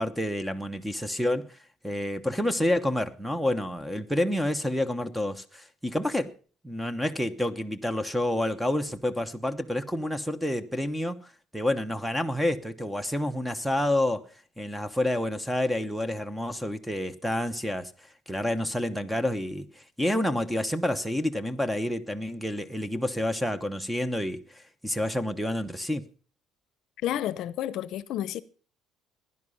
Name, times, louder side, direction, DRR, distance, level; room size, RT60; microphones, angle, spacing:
voice 1, 0.0-1.6 1.8-6.3 6.6-11.2 11.5-14.3 14.6-17.9 18.3-26.0, left 1 dB, ahead, 1.0 m, -29 dB
voice 2, 27.0-28.4, left 12 dB, 55° left, 0.8 m, -30 dB
16.5 x 11.0 x 5.5 m
cardioid pair, 155°, 0 cm